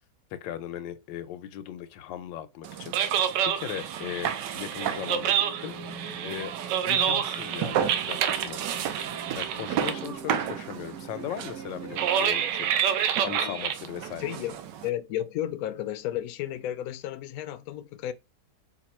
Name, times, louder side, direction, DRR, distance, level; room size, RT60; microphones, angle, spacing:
voice 1, 0.3-2.9 3.4-5.8 6.2-6.5 6.8-8.9 9.4-12.7 13.2-14.3, left 11 dB, 90° left, 1.3 m, -38 dB
sound 1, 2.6-14.9, right 9 dB, 75° right, 1.2 m, -28 dB
sound 2, 4.8-12.5, right 4 dB, 45° right, 1.5 m, -44 dB
voice 2, 14.2-14.6 14.8-18.1, left 12 dB, 70° left, 0.8 m, -33 dB
4.2 x 2.5 x 4.2 m
omnidirectional pair, 2.0 m